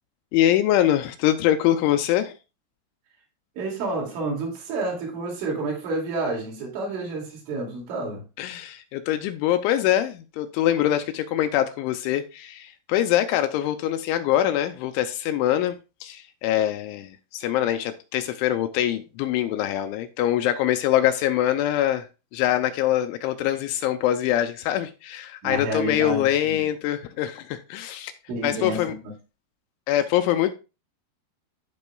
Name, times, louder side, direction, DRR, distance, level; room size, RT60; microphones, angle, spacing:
voice 1, 0.3-2.3 8.4-15.8 16.0-22.0 22.3-28.1 28.4-28.9 29.9-30.5, left 12 dB, 80° left, 2.9 m, -24 dB
voice 2, 3.6-8.2 25.4-26.7 28.3-29.1, right 2 dB, 70° right, 4.7 m, -30 dB
14.0 x 5.3 x 2.3 m
omnidirectional pair, 5.7 m